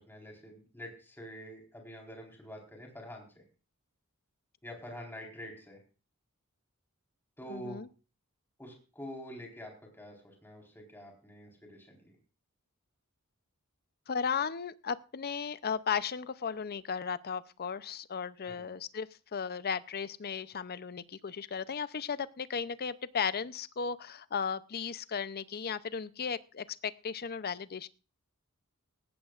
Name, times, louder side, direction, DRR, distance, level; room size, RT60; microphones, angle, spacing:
voice 1, 0.0-3.4 4.6-5.8 7.4-7.8 8.6-12.2 18.4-18.6, equal, 10° left, 0 dB, 4.2 m, -46 dB
voice 2, 7.5-7.9 14.1-27.9, left 6 dB, 45° left, 15 dB, 0.6 m, -35 dB
18.0 x 15.5 x 2.5 m, 0.35 s
head